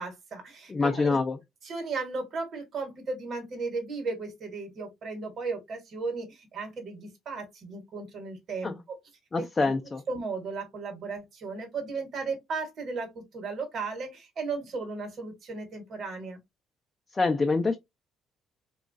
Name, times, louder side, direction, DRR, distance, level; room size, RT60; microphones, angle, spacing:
voice 1, 0.0-1.2 1.6-9.0 9.4-9.7 10.1-16.4, right 4 dB, 50° right, 1.1 m, -35 dB
voice 2, 0.7-1.4 8.6-8.8 9.3-10.0 17.1-17.8, left 3 dB, 25° left, 0.4 m, -25 dB
2.9 x 2.3 x 2.5 m
cardioid pair, 105°, 0 cm